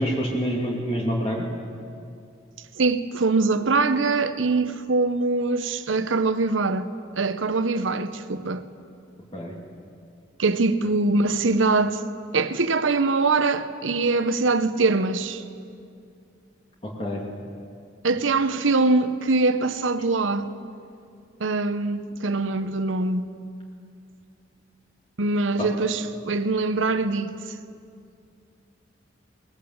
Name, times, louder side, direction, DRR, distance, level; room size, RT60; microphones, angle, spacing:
voice 1, 0.0-1.5 9.3-9.5 16.8-17.2 25.6-25.7, equal, 30° left, 2.4 m, -26 dB
voice 2, 2.8-6.9 7.2-8.6 10.4-12.0 12.3-15.4 18.0-20.5 21.4-23.3 25.2-27.3, right 3 dB, 85° right, 1.0 m, -23 dB
22.0 x 19.0 x 7.9 m
head